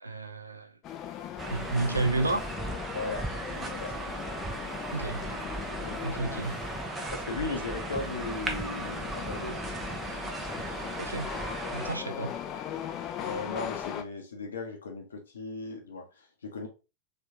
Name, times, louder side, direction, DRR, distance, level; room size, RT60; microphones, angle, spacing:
voice 1, 0.0-0.7 1.5-2.4 4.9-5.2 6.0-6.5 11.0-11.3 11.7-12.3, right 2 dB, 80° right, 0.5 m, -31 dB
sound 1, 0.8-14.0, left 10 dB, 35° left, 0.5 m, -39 dB
sound 2, 1.4-12.0, right 2 dB, 15° right, 0.8 m, -37 dB
voice 2, 2.9-3.9 5.7-6.5 7.1-9.6 9.9-10.0 12.2-12.3 13.2-16.7, left 3 dB, 70° left, 0.9 m, -37 dB
3.3 x 3.3 x 2.7 m
figure-of-eight pair, 90°, 0 cm